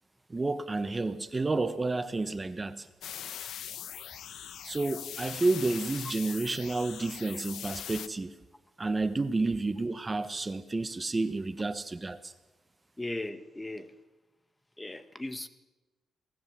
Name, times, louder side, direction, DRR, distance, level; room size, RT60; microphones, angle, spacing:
voice 1, 0.3-2.9 4.6-8.3 8.8-12.3, right 3 dB, 25° right, 11 dB, 1.2 m, -30 dB
sound 1, 3.0-8.1, left 10 dB, 80° left, 1.0 m, -41 dB
voice 2, 13.0-13.9 14.8-15.5, left 2 dB, 15° left, 11 dB, 1.5 m, -37 dB
27.5 x 19.0 x 7.6 m, 1.1 s
cardioid pair, 85°, 0 cm